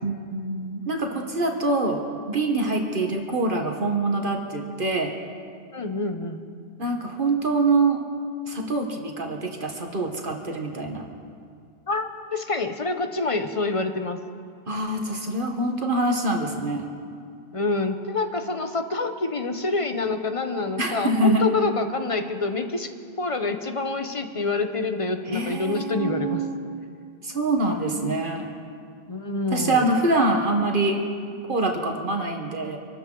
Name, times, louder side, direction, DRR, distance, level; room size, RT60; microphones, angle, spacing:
voice 1, 0.0-2.0 2.3-5.1 6.8-8.0 8.5-11.1 14.7-16.9 20.8-21.4 25.3-26.6 27.2-28.5 29.5-31.0 31.5-32.8, right 2 dB, 55° right, 2 dB, 1.5 m, -25 dB
voice 2, 5.7-6.4 11.9-14.2 17.5-22.9 23.2-26.4 29.1-29.9, left 3 dB, 35° left, 7 dB, 0.9 m, -27 dB
25.0 x 13.5 x 3.9 m, 2.3 s
omnidirectional pair, 1.1 m